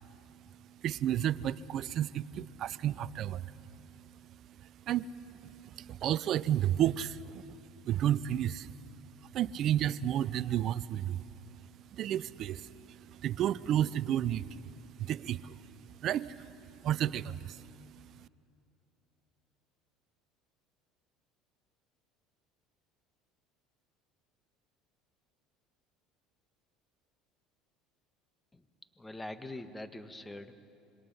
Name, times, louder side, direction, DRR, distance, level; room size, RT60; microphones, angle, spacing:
voice 1, 0.8-3.5 4.9-5.1 5.6-7.4 7.9-8.7 9.3-11.2 11.9-15.6 16.0-16.3 16.8-17.7, right 11 dB, 50° right, 19 dB, 0.5 m, -31 dB
voice 2, 29.0-30.6, left 2 dB, 15° left, 10 dB, 1.5 m, -43 dB
26.5 x 22.0 x 5.6 m, 2.7 s
hypercardioid pair, 75°, 0 cm